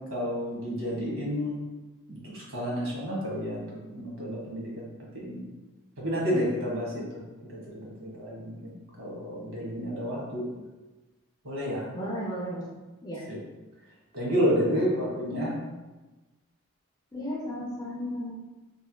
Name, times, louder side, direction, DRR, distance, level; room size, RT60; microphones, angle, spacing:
voice 1, 0.1-1.6 2.1-4.9 5.1-5.4 6.0-7.2 7.5-10.4 11.4-11.9 13.3-13.4 14.1-15.5, equal, 75° right, -4 dB, 1.1 m, -30 dB
voice 2, 11.9-12.8 13.0-13.2 17.1-18.3, equal, 20° left, -4 dB, 0.5 m, -34 dB
3.3 x 2.8 x 2.2 m, 1.2 s
head